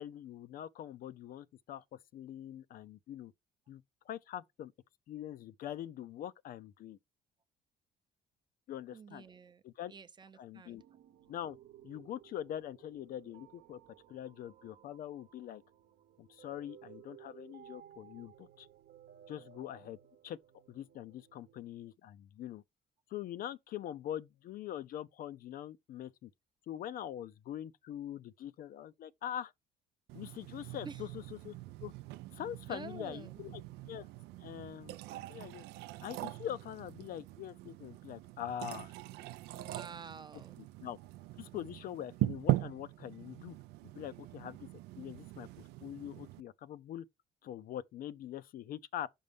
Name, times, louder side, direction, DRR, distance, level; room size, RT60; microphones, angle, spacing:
voice 1, 0.0-3.3 3.7-4.7 5.1-7.0 8.7-9.2 9.6-9.9 10.4-10.8 11.3-11.6 11.8-13.8 14.1-15.6 16.2-18.7 19.3-20.0 20.2-20.4 20.7-22.6 23.1-26.3 26.7-29.5 30.1-31.1 31.4-31.9 32.3-34.1 34.4-35.7 36.0-38.9 40.8-41.0 41.4-43.6 43.9-44.7 45.0-45.5 45.8-47.1 47.4-49.1, left 11 dB, 60° left, 0.4 m, -43 dB
voice 2, 8.9-9.6 9.9-10.8 30.8-31.1 32.7-33.4 39.5-40.6, right 5 dB, 25° right, 0.6 m, -49 dB
sound 1, 10.8-21.6, right 11 dB, 65° right, 0.8 m, -58 dB
sound 2, 30.1-46.4, right 17 dB, 85° right, 0.4 m, -41 dB
5.4 x 5.2 x 3.4 m
cardioid pair, 110°, 17 cm